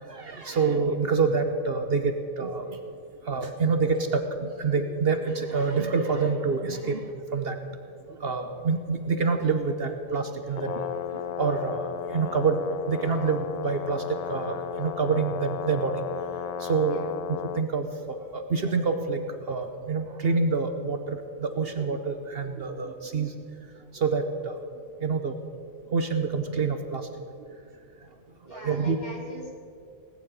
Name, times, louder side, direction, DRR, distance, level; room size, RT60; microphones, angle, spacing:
voice 1, 0.0-2.8 3.3-7.6 8.2-16.0 16.6-17.0 17.5-23.3 23.9-24.6 25.0-25.4 25.9-27.1 28.5-29.0, right 4 dB, 55° right, 7 dB, 1.1 m, -27 dB
Brass instrument, 10.5-17.7, left 9 dB, 50° left, 0.4 m, -35 dB
voice 2, 28.4-29.5, equal, 35° left, -2 dB, 3.3 m, -41 dB
18.5 x 7.5 x 9.0 m, 2.3 s
omnidirectional pair, 1.2 m